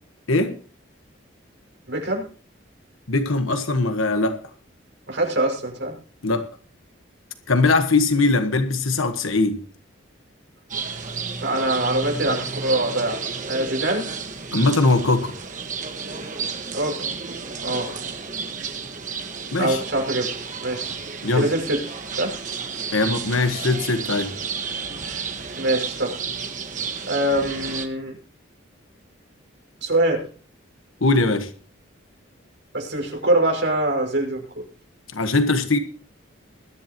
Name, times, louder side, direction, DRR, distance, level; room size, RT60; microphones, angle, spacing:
voice 1, 1.9-2.3 5.1-6.0 11.4-13.2 13.5-14.1 16.7-17.1 17.6-17.9 19.6-20.3 20.6-21.0 21.3-21.8 22.2-22.4 25.6-26.1 27.0-28.2 29.8-30.3 32.7-34.4, right 1 dB, 65° right, 5.9 m, -23 dB
voice 2, 3.1-4.4 6.2-6.5 7.5-9.6 14.5-15.3 19.5-19.8 21.2-21.5 22.9-24.3 31.0-31.5 35.1-35.8, left 3 dB, 90° left, 1.3 m, -20 dB
sound 1, 10.7-27.9, right 5 dB, 40° right, 1.5 m, -32 dB
21.0 x 10.5 x 3.0 m
head